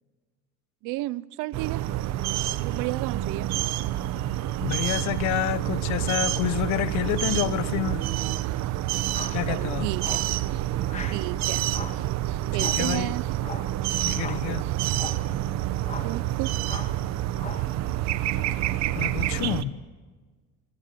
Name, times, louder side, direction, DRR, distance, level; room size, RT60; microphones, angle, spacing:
voice 1, 0.8-1.8 2.5-3.5 9.5-10.2 11.1-11.6 12.5-13.2 16.0-16.5, right 18 dB, 80° right, 0.8 m, -32 dB
sound 1, 1.5-19.6, right 14 dB, 60° right, 1.1 m, -28 dB
voice 2, 4.6-8.1 9.3-9.9 12.6-13.1 14.0-14.7 18.9-19.8, left 14 dB, 65° left, 1.1 m, -28 dB
sound 2, 9.1-9.4 10.0-10.3 10.9-11.3 11.7-12.1 12.5-12.9 13.4-13.7 14.2-14.5 14.9-15.3 15.8-16.2 16.6-17.0 17.4-17.7, left 5 dB, 20° left, 2.1 m, -39 dB
26.5 x 25.5 x 6.9 m
cardioid pair, 175°, 31 cm